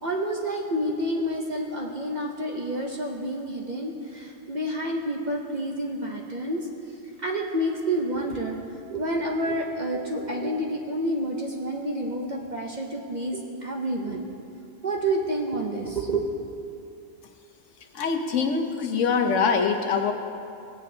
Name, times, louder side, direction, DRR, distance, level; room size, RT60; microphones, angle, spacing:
voice 1, 0.0-7.0 7.2-14.3 14.8-16.2, right 1 dB, 45° right, 0 dB, 0.7 m, -29 dB
voice 2, 17.9-20.1, left 5 dB, 70° left, 5 dB, 1.1 m, -24 dB
16.5 x 8.8 x 2.7 m, 2.6 s
omnidirectional pair, 1.3 m